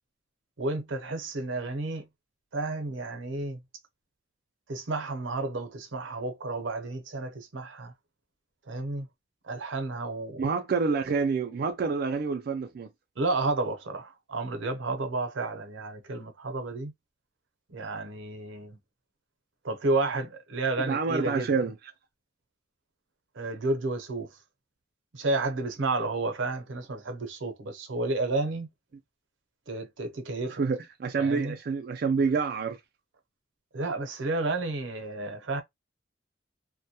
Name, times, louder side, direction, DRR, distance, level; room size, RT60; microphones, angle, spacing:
voice 1, 0.6-2.0 2.5-3.6 4.7-7.9 8.7-9.1 9.5-10.4 13.2-16.9 17.7-18.8 19.6-21.5 23.4-24.3 25.1-28.7 29.7-30.6 31.2-31.6 33.7-35.6, right 2 dB, 85° right, 0.6 m, -31 dB
voice 2, 10.4-12.9 20.8-21.8 30.5-32.8, right 5 dB, 55° right, 0.3 m, -28 dB
2.2 x 2.0 x 2.8 m
head